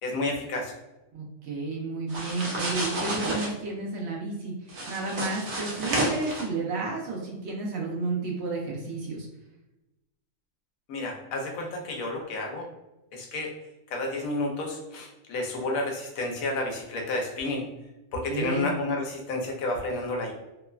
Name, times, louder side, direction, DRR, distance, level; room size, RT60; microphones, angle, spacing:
voice 1, 0.0-0.7 10.9-12.7 13.1-13.5 13.9-17.7 18.1-20.3, left 2 dB, 80° left, 1 dB, 1.0 m, -31 dB
voice 2, 1.1-4.5 4.9-9.3 18.3-18.8, right 3 dB, 60° right, -1 dB, 0.8 m, -32 dB
sound 1, 2.1-3.5 4.7-6.4, right 1 dB, 80° right, 1.1 m, -30 dB
3.0 x 2.1 x 2.3 m, 0.97 s
omnidirectional pair, 1.4 m